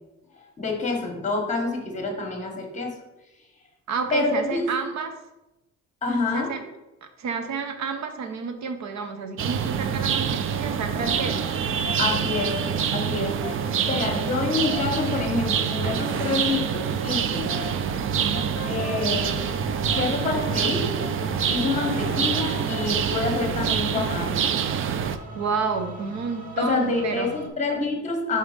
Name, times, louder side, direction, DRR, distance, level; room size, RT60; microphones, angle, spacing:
voice 1, 0.6-2.9 4.1-4.7 6.0-6.6 12.0-12.6 12.9-17.5 18.7-19.4 19.9-20.9 21.5-24.4 26.6-28.4, left 3 dB, 25° left, 2 dB, 1.4 m, -27 dB
voice 2, 3.9-5.1 6.3-6.6 7.2-11.4 13.3-13.9 18.0-18.5 25.3-27.3, right 5 dB, 65° right, 7 dB, 0.9 m, -30 dB
sound 1, 9.4-25.2, right 7 dB, 45° right, 0.4 m, -26 dB
Brass instrument, 10.7-16.3 17.2-23.0, left 7 dB, 45° left, 0.8 m, -41 dB
sound 2, 18.1-27.5, right 2 dB, 30° right, 0.8 m, -40 dB
5.2 x 4.3 x 5.0 m, 0.98 s
cardioid pair, 155°, 29 cm